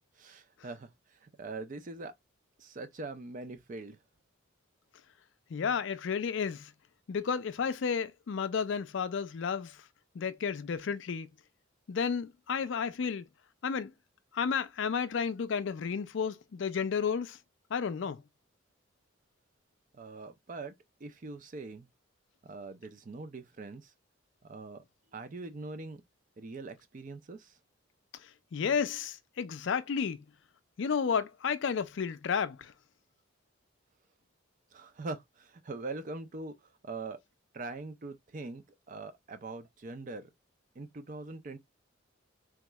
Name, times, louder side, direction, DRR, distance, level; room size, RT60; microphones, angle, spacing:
voice 1, 0.2-2.1 2.6-4.0 19.9-20.7 21.0-21.9 22.4-23.9 24.4-24.8 25.1-26.0 26.4-27.6 34.7-37.2 37.5-40.3 40.8-41.6, right 3 dB, 40° right, 0.4 m, -42 dB
voice 2, 5.5-6.7 7.1-9.8 10.1-11.3 11.9-13.3 13.6-13.9 14.3-17.4 17.7-18.2 28.1-30.2 30.8-32.7, left 6 dB, 60° left, 0.4 m, -32 dB
3.5 x 3.0 x 2.2 m
head